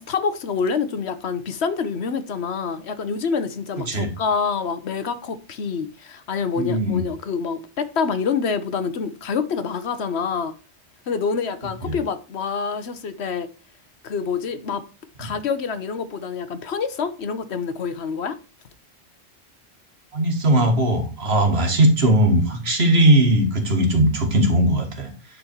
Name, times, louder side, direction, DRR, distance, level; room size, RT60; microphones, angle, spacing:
voice 1, 0.0-10.5 11.1-13.5 14.0-14.8 15.2-18.4, left 5 dB, 70° left, 1.1 m, -26 dB
voice 2, 6.6-7.0 11.8-11.9 15.2-15.3 20.1-25.1, right 1 dB, 65° right, 1.9 m, -19 dB
10.5 x 4.1 x 4.5 m
omnidirectional pair, 1.1 m